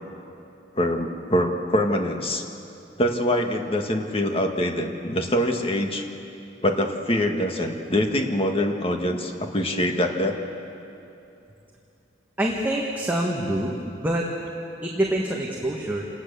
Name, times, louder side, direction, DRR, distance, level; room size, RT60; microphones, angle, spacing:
voice 1, 0.7-2.4 3.0-6.0 6.6-10.4, left 1 dB, 30° left, 3 dB, 1.8 m, -24 dB
voice 2, 12.4-14.3 14.8-16.1, right 1 dB, 10° right, -2 dB, 1.6 m, -26 dB
28.0 x 18.5 x 7.1 m, 2.8 s
head